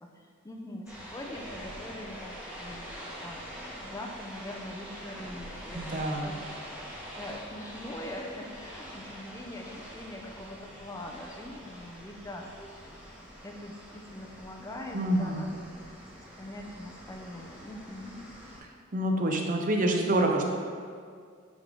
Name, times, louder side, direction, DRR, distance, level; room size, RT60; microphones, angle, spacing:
voice 1, 0.0-2.9 3.2-6.8 7.2-12.9 13.4-15.6 16.4-18.2, left 1 dB, 15° left, 1 dB, 0.5 m, -43 dB
sound 1, 0.9-18.6, equal, 5° right, 1.1 m, -45 dB
voice 2, 5.7-6.4 14.9-15.6 18.9-20.4, right 1 dB, 40° right, 2 dB, 0.6 m, -27 dB
9.4 x 3.5 x 3.6 m, 2.1 s
head